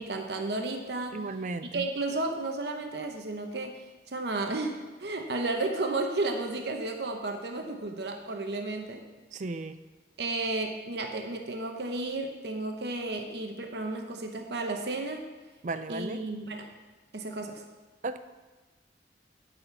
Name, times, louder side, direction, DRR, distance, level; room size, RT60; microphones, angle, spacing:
voice 1, 0.0-1.2 1.7-3.8 4.1-9.1 10.2-15.2 15.9-16.7 17.1-17.6, right 2 dB, 65° right, 4 dB, 0.9 m, -33 dB
voice 2, 1.1-1.9 9.3-9.8 15.6-16.2 18.0-18.2, right 3 dB, 40° right, 11 dB, 0.4 m, -35 dB
9.6 x 4.3 x 6.9 m, 1.2 s
head